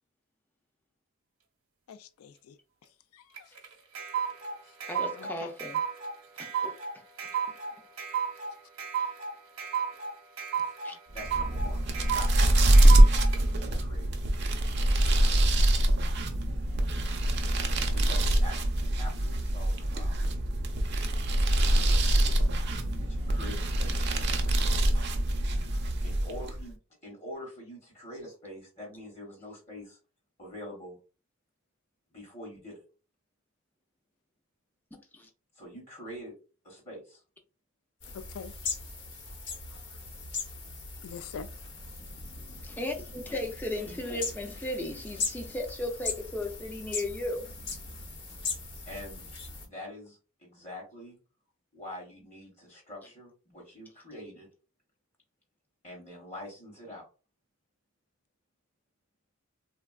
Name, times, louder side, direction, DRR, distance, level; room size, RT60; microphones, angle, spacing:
voice 1, 1.9-2.5 3.1-3.5 5.2-5.5 38.1-38.5 41.0-41.5, left 7 dB, 85° left, 0.3 m, -43 dB
sound 1, 3.3-13.4, right 7 dB, 75° right, 0.8 m, -33 dB
voice 2, 4.9-5.8 6.4-6.8 9.0-9.1 10.8-11.0 35.1-35.3 42.6-47.5, left 1 dB, 10° left, 0.4 m, -35 dB
voice 3, 11.1-11.8 12.1-13.0 13.4-14.1 17.9-20.1 21.7-22.4 23.0-24.2 26.0-26.8 27.0-30.0 30.4-31.0 32.1-32.8 35.6-36.3 36.6-37.2 43.9-44.2 48.9-49.3 49.6-51.2 51.7-54.5 55.8-57.0, left 1 dB, 30° left, 0.9 m, -45 dB
sound 2, 11.1-26.7, right 1 dB, 50° right, 0.5 m, -24 dB
sound 3, 38.0-49.7, left 4 dB, 55° left, 0.9 m, -39 dB
3.4 x 2.2 x 2.3 m
head